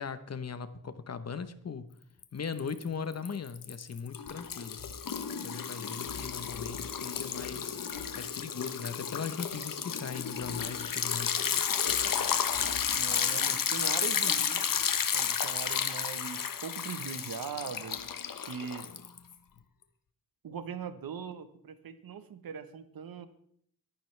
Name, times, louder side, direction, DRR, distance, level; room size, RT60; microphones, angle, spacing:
voice 1, 0.0-1.9 2.3-4.8 5.4-7.8 8.1-11.4, left 6 dB, 45° left, 12 dB, 1.0 m, -39 dB
Liquid, 2.2-2.8 3.1-19.3, left 7 dB, 70° left, 1.1 m, -32 dB
voice 2, 12.9-14.7 15.1-18.0 18.5-18.9 20.4-23.3, right 7 dB, 80° right, 11 dB, 1.2 m, -40 dB
23.0 x 11.5 x 3.4 m, 0.67 s
wide cardioid pair, 110°, 35 cm